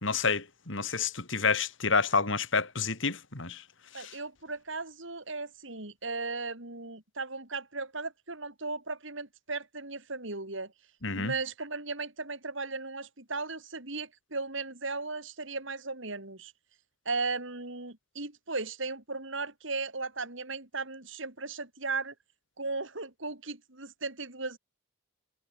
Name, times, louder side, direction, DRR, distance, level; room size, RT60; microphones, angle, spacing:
voice 1, 0.0-3.6 3.9-4.1 11.0-11.3, left 4 dB, 65° left, 2.9 m, -29 dB
voice 2, 3.9-10.7 11.1-16.5 17.1-22.1 22.6-24.6, right 3 dB, 65° right, 4.0 m, -36 dB
head